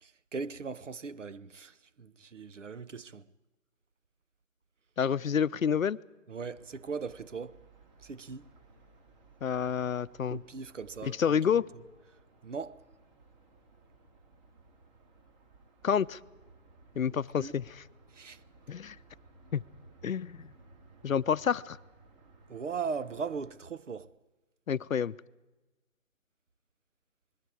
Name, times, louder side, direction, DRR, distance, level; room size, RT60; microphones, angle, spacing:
voice 1, 0.0-3.3 6.3-7.6 8.0-8.5 10.3-11.4 12.4-12.8 17.1-17.6 18.1-18.4 22.5-24.1, right 5 dB, 65° right, 1.0 m, -39 dB
voice 2, 5.0-6.0 9.4-10.4 11.0-11.7 15.8-16.2 17.0-17.7 18.7-19.0 19.5-19.6 20.0-20.5 21.0-21.8 24.7-25.1, left 7 dB, 80° left, 0.7 m, -28 dB
sound 1, 6.4-23.6, right 3 dB, 30° right, 3.1 m, -59 dB
27.5 x 21.5 x 4.8 m
figure-of-eight pair, 160°, 40 cm